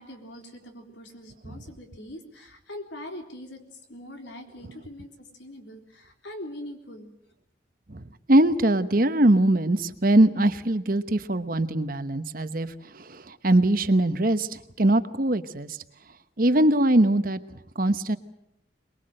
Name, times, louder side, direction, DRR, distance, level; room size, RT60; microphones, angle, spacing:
voice 1, 0.0-3.6 3.9-7.1, left 1 dB, 80° left, 4 dB, 3.8 m, -42 dB
voice 2, 7.9-15.8 16.4-18.2, right 1 dB, 50° right, 11 dB, 1.1 m, -22 dB
23.5 x 22.0 x 7.7 m, 0.77 s
head